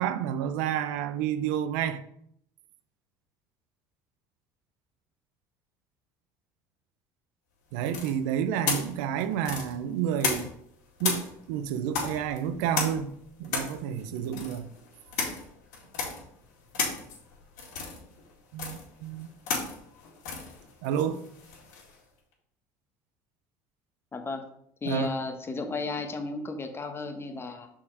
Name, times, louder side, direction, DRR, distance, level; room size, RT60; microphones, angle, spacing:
voice 1, 0.0-2.0 7.7-10.5 11.0-13.1 13.4-14.7 18.5-19.3 20.8-21.3 24.8-25.1, right 9 dB, 80° right, 0.5 m, -30 dB
sound 1, 7.9-10.7 11.0-22.0, left 5 dB, 80° left, 2.2 m, -34 dB
voice 2, 24.1-24.4 24.8-27.7, left 3 dB, 25° left, 1.1 m, -34 dB
5.9 x 4.3 x 4.7 m
supercardioid pair, 85°, 9 cm